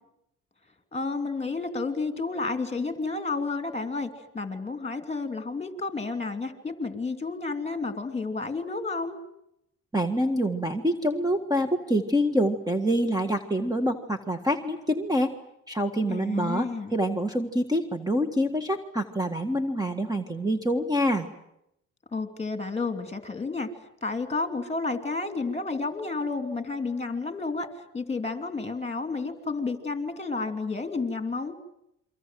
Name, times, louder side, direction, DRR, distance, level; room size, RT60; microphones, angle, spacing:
voice 1, 0.9-9.2 16.1-17.0 22.1-23.7 24.0-27.7 27.9-31.5, left 3 dB, 20° left, 8 dB, 3.1 m, -31 dB
voice 2, 9.9-15.3 15.7-21.3, equal, 10° right, 7 dB, 1.8 m, -26 dB
28.5 x 24.0 x 7.7 m, 0.80 s
cardioid pair, 90°, 30 cm